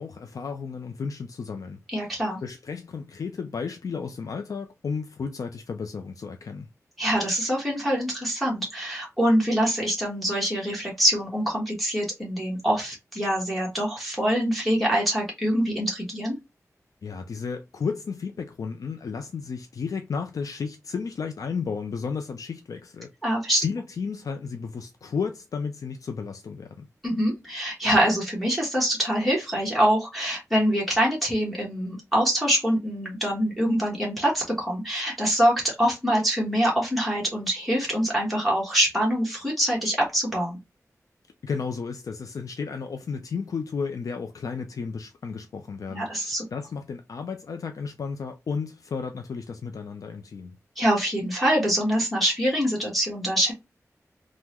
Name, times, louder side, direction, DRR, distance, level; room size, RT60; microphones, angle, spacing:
voice 1, 0.0-2.1 2.4-6.7 17.0-23.1 23.6-26.9 41.4-50.6, left 5 dB, 80° left, 0.4 m, -33 dB
voice 2, 1.9-2.4 7.0-16.3 23.2-23.6 27.0-40.6 45.9-46.5 50.8-53.5, equal, ahead, 1.1 m, -24 dB
3.5 x 2.0 x 2.9 m
wide cardioid pair, 110°, 6 cm